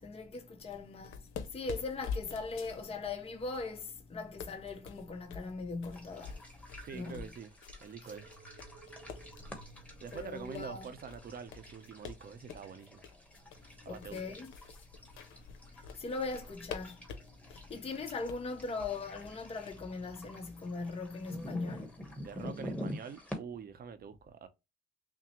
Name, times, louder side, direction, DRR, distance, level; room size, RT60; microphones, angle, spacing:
voice 1, 0.0-6.4 6.9-7.2 8.0-8.1 10.1-10.9 13.8-14.5 15.8-17.0 17.5-21.9, left 3 dB, 30° left, 0.7 m, -40 dB
sound 1, 0.6-19.7, left 6 dB, 85° left, 0.7 m, -48 dB
sound 2, 5.9-23.4, equal, 5° left, 1.2 m, -48 dB
voice 2, 6.8-7.5 7.8-8.3 10.0-13.0 13.8-14.2 22.2-24.5, right 6 dB, 50° right, 0.7 m, -45 dB
sound 3, 8.1-15.3 15.8-16.6 17.3-17.9 18.8-18.9, right 4 dB, 85° right, 1.3 m, -60 dB
5.9 x 2.0 x 2.9 m
cardioid pair, 90°, 20 cm